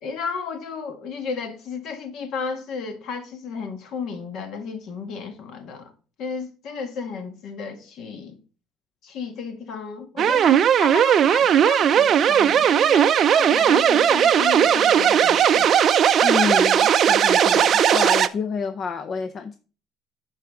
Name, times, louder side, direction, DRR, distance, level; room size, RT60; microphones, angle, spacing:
voice 1, 0.0-5.9 6.2-8.4 9.0-15.8, left 5 dB, 55° left, 1.5 m, -33 dB
sound 1, 10.2-18.3, right 9 dB, 40° right, 0.5 m, -17 dB
voice 2, 16.2-19.6, left 5 dB, 30° left, 0.5 m, -28 dB
12.0 x 4.7 x 3.6 m
cardioid pair, 160°, 0 cm